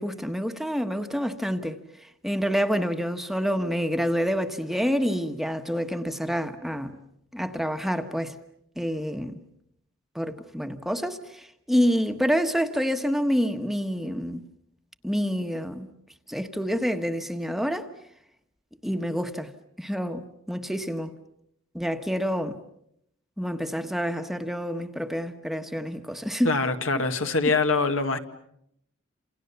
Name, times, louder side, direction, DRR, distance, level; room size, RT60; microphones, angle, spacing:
voice 1, 0.0-7.0 7.3-8.3 8.8-9.4 10.1-14.4 15.0-15.9 16.3-17.9 18.8-19.5 19.8-21.2 21.7-22.6 23.4-26.5 27.4-27.5, equal, ahead, 1.3 m, -28 dB
voice 2, 26.4-28.2, left 3 dB, 75° left, 2.0 m, -24 dB
28.5 x 28.0 x 7.0 m
head